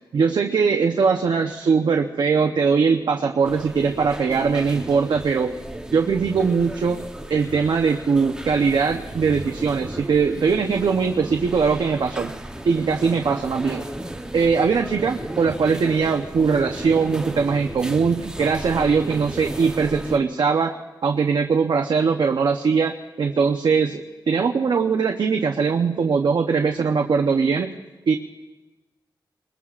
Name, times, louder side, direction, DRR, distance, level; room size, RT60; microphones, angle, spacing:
voice 1, 0.1-5.6 5.9-7.0 7.3-12.3 12.6-13.8 14.3-20.7 21.0-27.7 28.1-28.2, right 5 dB, 70° right, 4 dB, 0.7 m, -21 dB
sound 1, 3.4-20.2, right 1 dB, 10° right, 0.8 m, -35 dB
27.0 x 21.0 x 2.5 m, 1.2 s
wide cardioid pair, 150°, 8 cm